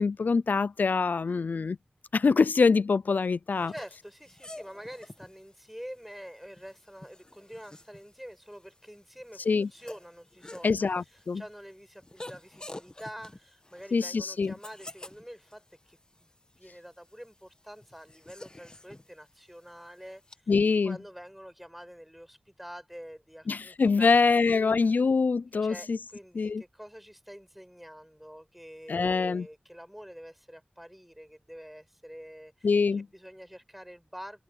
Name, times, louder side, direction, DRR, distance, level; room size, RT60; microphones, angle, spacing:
voice 1, 0.0-1.8 2.1-3.7 9.5-9.7 10.6-11.4 13.9-14.5 20.5-21.0 23.5-26.0 26.3-26.6 28.9-29.5 32.6-33.1, left 4 dB, 70° left, 0.4 m, -24 dB
sound 1, 3.5-20.4, left 2 dB, 25° left, 1.4 m, -50 dB
voice 2, 3.7-16.3 16.6-20.5 20.8-25.0 25.6-32.7 33.0-34.4, equal, 5° right, 7.6 m, -47 dB
wide cardioid pair, 75°, 3 cm